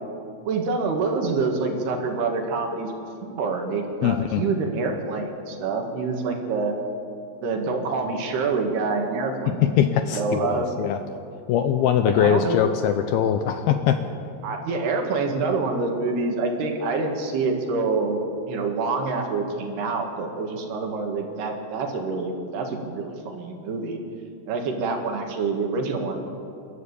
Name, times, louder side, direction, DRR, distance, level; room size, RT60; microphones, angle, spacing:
voice 1, 0.5-2.9 3.2-6.8 7.4-9.8 10.1-10.7 12.0-12.6 14.4-18.2 18.5-24.0 24.5-26.2, right 4 dB, 65° right, 3 dB, 4.0 m, -26 dB
voice 2, 4.0-4.4 9.6-11.0 11.5-14.0, left 9 dB, 75° left, 8 dB, 2.4 m, -21 dB
28.5 x 13.0 x 8.4 m, 2.6 s
omnidirectional pair, 5.1 m